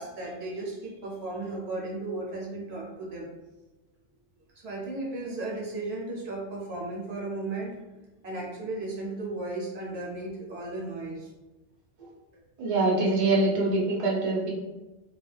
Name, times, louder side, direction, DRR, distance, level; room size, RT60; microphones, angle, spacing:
voice 1, 0.0-3.3 4.6-7.8 8.2-11.3 12.6-12.8, right 2 dB, 65° right, -3 dB, 0.9 m, -35 dB
voice 2, 12.6-14.5, right 2 dB, 35° right, -5 dB, 0.6 m, -24 dB
2.3 x 2.2 x 3.1 m, 1.1 s
omnidirectional pair, 1.3 m